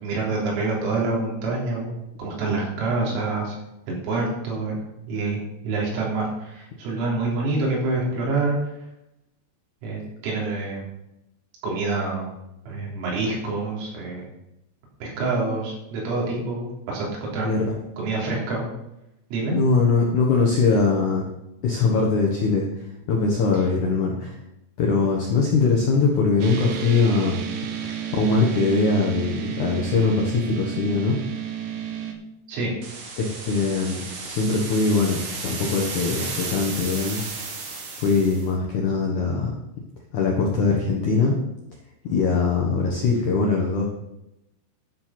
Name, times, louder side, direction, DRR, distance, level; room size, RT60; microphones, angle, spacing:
voice 1, 0.0-3.6 4.0-4.8 5.1-8.6 9.8-10.8 11.6-12.3 12.7-14.3 15.0-18.7 19.3-19.6 32.5-32.7, right 3 dB, 90° right, -3 dB, 6.2 m, -27 dB
voice 2, 17.4-17.8 19.5-21.3 21.6-24.4 24.8-27.4 27.8-31.2 33.2-37.2 38.0-39.5 40.1-41.4 42.0-43.9, left 4 dB, 75° left, -1 dB, 1.8 m, -22 dB
sound 1, 26.4-32.1, right 8 dB, 70° right, 3.2 m, -31 dB
sound 2, 32.8-38.5, right 4 dB, 55° right, 2.4 m, -34 dB
11.5 x 7.4 x 5.9 m, 0.87 s
omnidirectional pair, 5.8 m